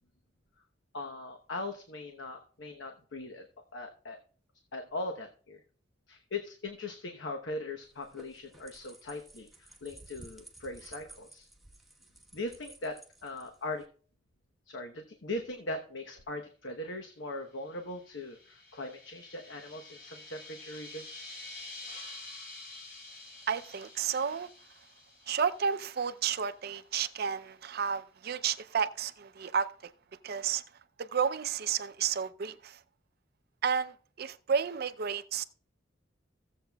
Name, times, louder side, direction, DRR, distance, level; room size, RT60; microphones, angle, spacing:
voice 1, 0.9-3.5 3.7-4.2 4.7-5.6 6.1-11.5 12.3-13.8 14.7-21.2, left 2 dB, 75° left, 1.0 m, -40 dB
sound 1, 7.8-13.9, right 2 dB, ahead, 1.2 m, -54 dB
sound 2, 17.8-26.1, left 2 dB, 60° left, 3.6 m, -48 dB
voice 2, 23.5-24.5 25.3-29.9 30.2-30.6 31.0-32.8 33.6-35.4, right 7 dB, 55° right, 0.5 m, -32 dB
16.0 x 7.5 x 2.3 m
head